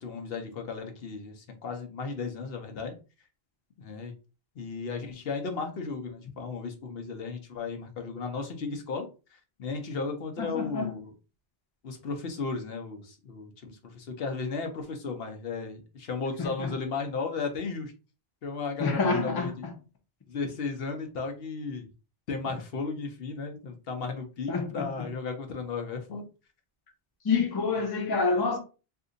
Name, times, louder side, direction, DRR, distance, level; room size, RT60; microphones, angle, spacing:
voice 1, 0.0-3.0 3.8-4.1 4.6-9.1 9.6-11.1 11.8-17.9 18.4-19.7 20.3-21.9 22.3-26.2, left 4 dB, 70° left, 1.0 m, -35 dB
voice 2, 10.4-10.9 16.4-16.7 18.8-19.7 24.5-25.1 27.2-28.6, left 4 dB, 25° left, 0.6 m, -28 dB
2.7 x 2.6 x 3.8 m
omnidirectional pair, 1.0 m